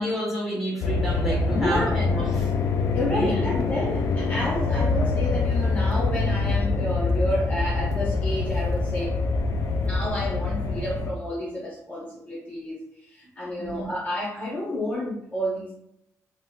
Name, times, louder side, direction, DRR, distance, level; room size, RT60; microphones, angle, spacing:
voice 1, 0.0-2.5 3.1-3.5 9.4-10.2 13.5-13.9, equal, 5° right, -6 dB, 1.2 m, -30 dB
sound 1, 0.8-11.1, left 3 dB, 60° left, 0.3 m, -25 dB
voice 2, 1.5-2.0 2.9-9.2 9.9-12.8 13.1-15.7, left 1 dB, 25° left, -6 dB, 0.7 m, -30 dB
3.4 x 2.8 x 2.3 m, 0.78 s
cardioid pair, 155°, 6 cm